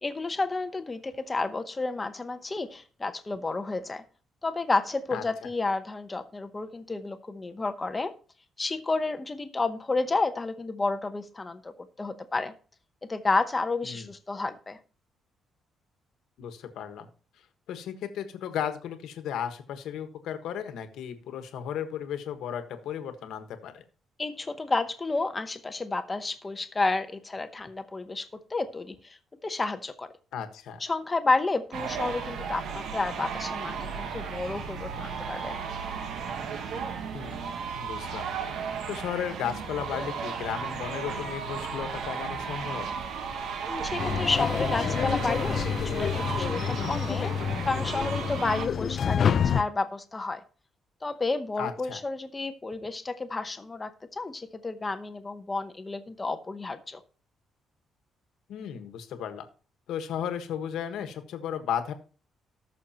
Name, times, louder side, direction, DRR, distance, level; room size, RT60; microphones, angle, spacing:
voice 1, 0.0-4.0 4.4-8.1 8.6-11.7 12.0-12.5 13.1-14.8 24.2-30.1 30.8-35.6 43.7-50.4 51.0-57.0, left 3 dB, 15° left, 9 dB, 0.8 m, -31 dB
voice 2, 5.1-5.5 13.8-14.1 16.4-17.1 17.7-23.8 30.3-30.8 37.1-38.3 38.9-42.9 51.6-52.0 58.5-59.4 59.9-61.9, left 9 dB, 80° left, 8 dB, 1.4 m, -35 dB
sound 1, 31.7-48.7, right 6 dB, 65° right, 1.2 m, -35 dB
sound 2, 44.0-49.6, left 7 dB, 40° left, 0.5 m, -28 dB
19.0 x 6.4 x 2.9 m, 0.38 s
cardioid pair, 165°, 0 cm